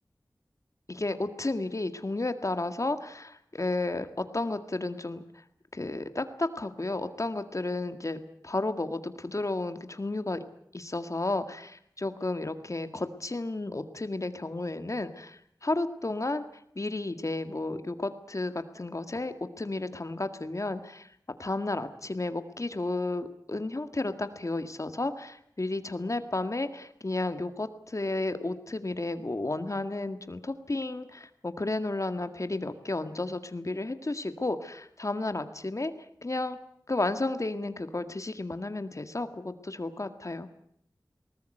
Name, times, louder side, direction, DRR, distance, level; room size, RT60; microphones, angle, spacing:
voice 1, 0.9-5.2 5.7-10.4 10.7-16.4 16.8-21.1 21.4-35.9 36.2-36.6 36.9-40.5, left 2 dB, 45° left, 9 dB, 1.9 m, -32 dB
21.0 x 18.5 x 9.1 m, 0.69 s
wide cardioid pair, 45°, 7 cm